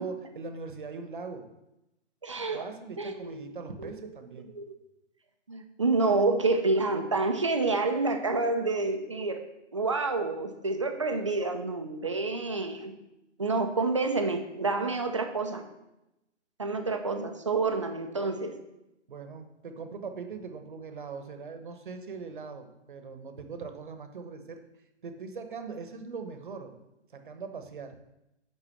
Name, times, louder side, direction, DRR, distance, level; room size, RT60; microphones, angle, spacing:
voice 1, 0.0-1.5 2.5-4.5 19.1-24.6 25.0-26.8 27.1-28.0, right 5 dB, 45° right, 7 dB, 1.2 m, -41 dB
voice 2, 2.2-2.7 3.0-3.9 4.5-4.7 5.5-9.4 9.7-12.9 13.4-15.6 16.6-18.6, right 3 dB, 25° right, 5 dB, 0.6 m, -28 dB
11.0 x 4.0 x 7.3 m, 0.91 s
hypercardioid pair, 175°, 36 cm